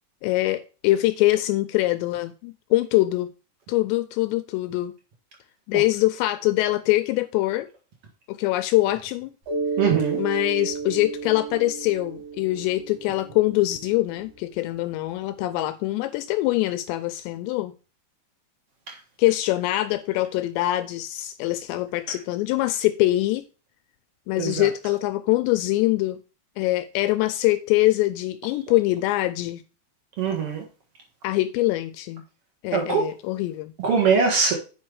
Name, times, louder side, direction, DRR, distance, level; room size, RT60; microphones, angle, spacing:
voice 1, 0.2-3.3 3.7-4.9 5.7-7.7 8.3-9.3 10.2-17.7 19.2-23.4 24.3-26.2 26.6-29.6 31.2-32.2 32.6-33.7, left 17 dB, 85° left, 2.7 m, -23 dB
Mallet percussion, 9.5-13.9, right 4 dB, 50° right, 4.5 m, -32 dB
voice 2, 9.8-10.2 24.4-24.7 30.2-30.6 32.7-33.1 33.8-34.5, right 5 dB, 75° right, 1.3 m, -22 dB
8.6 x 5.4 x 4.8 m
omnidirectional pair, 5.2 m